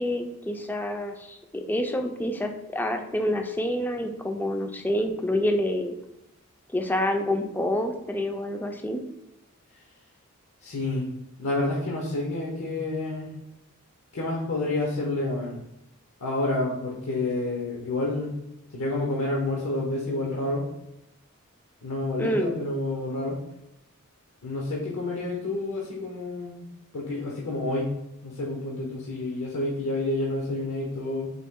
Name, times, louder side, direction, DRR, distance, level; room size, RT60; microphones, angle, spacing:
voice 1, 0.0-6.0 6.7-9.0 22.2-22.6, left 1 dB, 10° left, 4 dB, 0.3 m, -27 dB
voice 2, 10.6-11.1 11.4-13.3 14.1-15.6 16.2-18.4 18.7-20.7 21.8-23.4 24.4-26.7 26.9-28.0 28.2-31.3, left 2 dB, 75° left, -2 dB, 0.7 m, -29 dB
4.1 x 2.8 x 3.5 m, 0.86 s
head